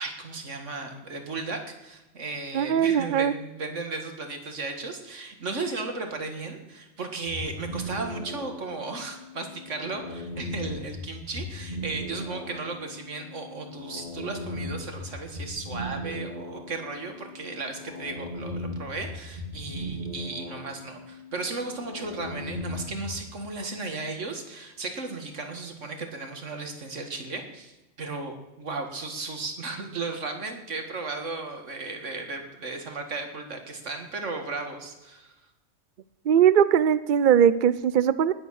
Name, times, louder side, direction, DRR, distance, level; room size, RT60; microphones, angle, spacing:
voice 1, 0.0-35.3, right 3 dB, 85° right, 5 dB, 2.3 m, -35 dB
voice 2, 2.5-3.3 36.3-38.3, right 9 dB, 55° right, 16 dB, 0.6 m, -20 dB
sound 1, 7.2-23.3, left 1 dB, 40° right, 2.1 m, -38 dB
19.0 x 8.1 x 6.5 m, 1.0 s
omnidirectional pair, 1.2 m